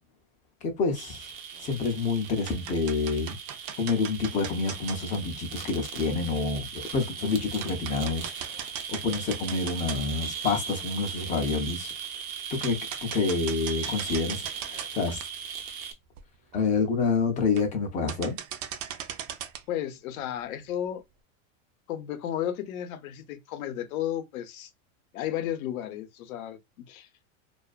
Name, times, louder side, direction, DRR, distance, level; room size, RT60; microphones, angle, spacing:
voice 1, 0.6-1.2 1.6-3.4 3.8-6.7 6.9-11.9 12.5-15.2 16.5-18.4, left 4 dB, 20° left, 0.4 m, -28 dB
sound 1, 0.9-15.9, right 7 dB, 90° right, 0.9 m, -38 dB
sound 2, 1.5-1.9 2.2-5.0 6.1-6.2 6.7-6.8 7.2-7.3 7.6-10.3 10.7-10.8 12.0-12.1 12.6-14.9 15.2-15.3 15.8-15.9 16.2-16.3 16.5-16.8 17.4-17.8 18.1-19.7, right 9 dB, 60° right, 0.5 m, -39 dB
voice 2, 19.7-21.0 21.9-24.7 25.1-27.1, left 11 dB, 85° left, 0.7 m, -33 dB
2.4 x 2.3 x 2.3 m
supercardioid pair, 145°, 41 cm